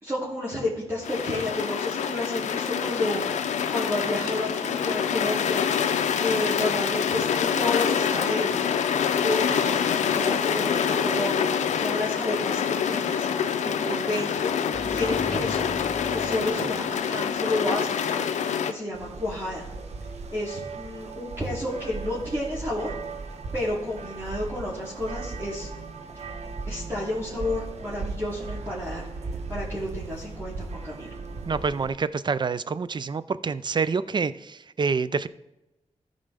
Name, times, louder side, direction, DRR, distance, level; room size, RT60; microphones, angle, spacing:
voice 1, 0.0-5.6 6.2-8.7 9.2-11.5 11.7-13.3 13.6-14.5 14.9-15.7 16.1-18.3 18.6-19.6 20.3-22.9 23.5-25.7 26.7-29.1 29.5-31.2, left 1 dB, 20° right, -8 dB, 3.0 m, -31 dB
sound 1, 1.0-18.7, left 7 dB, 90° left, 0.5 m, -26 dB
sound 2, 14.7-17.7, equal, 10° left, 0.8 m, -40 dB
sound 3, 18.9-31.9, right 3 dB, 65° right, 1.1 m, -37 dB
voice 2, 31.5-35.3, right 5 dB, 40° right, 16 dB, 0.4 m, -27 dB
13.5 x 5.3 x 3.5 m, 0.95 s
cardioid pair, 65°, 12 cm